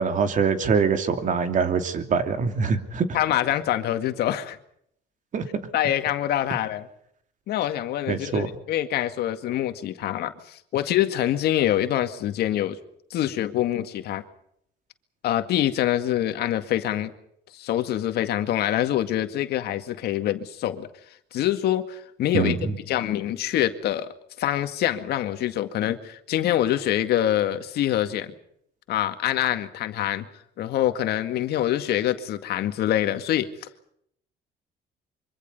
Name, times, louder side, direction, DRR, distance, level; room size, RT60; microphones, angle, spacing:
voice 1, 0.0-3.2 5.3-5.5 8.1-8.5 22.3-22.8, right 5 dB, 50° right, 8 dB, 2.9 m, -24 dB
voice 2, 3.1-4.6 5.7-6.9 7.5-12.8 13.1-14.2 15.2-17.1 17.5-20.9 21.3-22.6 22.9-28.3 28.9-30.3 30.6-33.5, left 12 dB, 75° left, 8 dB, 2.1 m, -25 dB
25.0 x 25.0 x 5.5 m, 0.70 s
cardioid pair, 110°, 17 cm